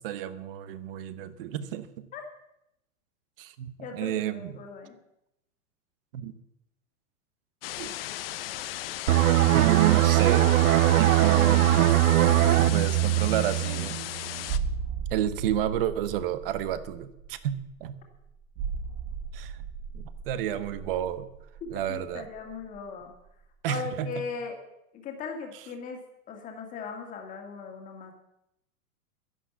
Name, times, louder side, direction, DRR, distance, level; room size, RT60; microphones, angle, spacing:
voice 1, 0.0-2.1 3.4-4.6 6.1-6.3 7.8-7.9 9.5-10.5 11.0-12.0 12.5-14.0 15.1-18.0 19.3-19.6 19.9-21.3 21.7-22.3 23.6-24.2, right 11 dB, 40° right, 14 dB, 1.0 m, -31 dB
voice 2, 3.8-4.9 21.6-23.1 23.7-24.6 24.9-26.0 26.3-28.1, left 5 dB, 20° left, 3 dB, 2.0 m, -38 dB
sound 1, 7.6-14.6, left 14 dB, 45° left, 0.7 m, -36 dB
sound 2, 9.1-14.5 14.8-15.0, right 14 dB, 85° right, 0.8 m, -21 dB
sound 3, 14.5-22.9 23.1-23.3, right 6 dB, 20° right, 0.6 m, -36 dB
12.0 x 11.0 x 7.1 m, 0.84 s
supercardioid pair, 165°, 41 cm